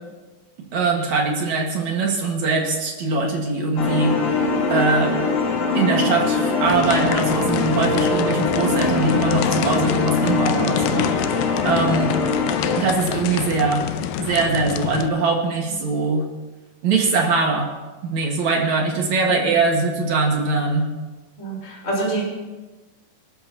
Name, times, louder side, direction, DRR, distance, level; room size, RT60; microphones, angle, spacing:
voice 1, 0.7-4.2 4.7-5.2 5.7-11.1 11.6-12.1 12.8-13.9 14.2-16.3 16.8-17.7 18.0-20.9, right 3 dB, 55° right, 0 dB, 2.6 m, -22 dB
sound 1, 3.8-12.8, left 3 dB, 65° left, 3.5 m, -22 dB
sound 2, 6.7-15.1, left 11 dB, 85° left, 1.9 m, -27 dB
voice 2, 21.4-22.2, right 2 dB, 20° left, -4 dB, 4.2 m, -26 dB
26.5 x 12.5 x 2.9 m, 1.2 s
omnidirectional pair, 4.6 m